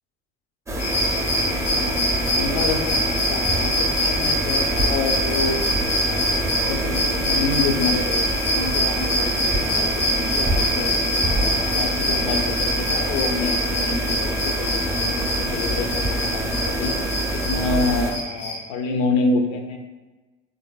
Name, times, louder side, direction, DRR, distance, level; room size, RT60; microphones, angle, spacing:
sound 1, 0.7-18.1, right 1 dB, 10° right, 0.4 m, -26 dB
sound 2, 0.8-18.5, equal, 90° left, 1.1 m, -25 dB
voice 1, 1.7-5.6 6.0-10.9 11.3-17.0 17.3-19.8, left 3 dB, 55° left, 4 dB, 0.5 m, -28 dB
3.3 x 2.5 x 2.3 m, 1.2 s
hypercardioid pair, 65°, 36 cm